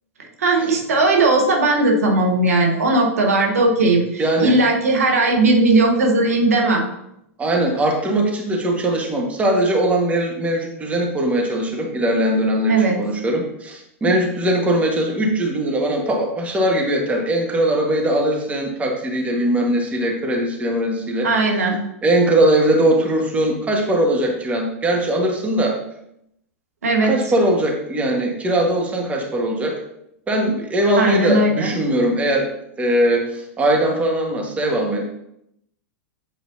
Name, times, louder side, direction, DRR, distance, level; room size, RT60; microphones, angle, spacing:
voice 1, 0.4-6.8 12.7-13.0 21.2-21.8 26.8-27.1 31.0-31.7, right 2 dB, 85° right, 1 dB, 1.3 m, -17 dB
voice 2, 4.2-4.6 7.4-21.3 22.0-25.8 27.0-29.8 30.3-32.5 32.8-35.0, right 1 dB, 15° right, 0 dB, 1.4 m, -20 dB
8.2 x 4.9 x 2.7 m, 0.78 s
hypercardioid pair, 105°, 8 cm